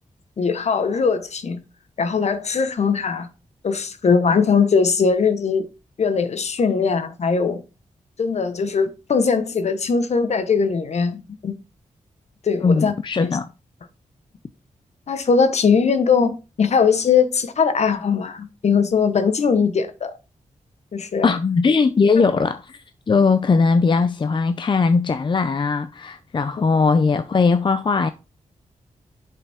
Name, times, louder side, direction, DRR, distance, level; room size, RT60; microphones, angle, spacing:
voice 1, 0.4-1.6 2.0-3.3 3.6-5.7 6.0-7.6 8.2-11.5 12.4-12.9 13.2-13.4 15.1-20.1 20.9-21.3, left 5 dB, 55° left, 1.1 m, -20 dB
voice 2, 12.6-13.5 21.2-28.1, left 4 dB, 40° left, 0.6 m, -19 dB
7.9 x 5.7 x 3.6 m
wide cardioid pair, 115°, 13 cm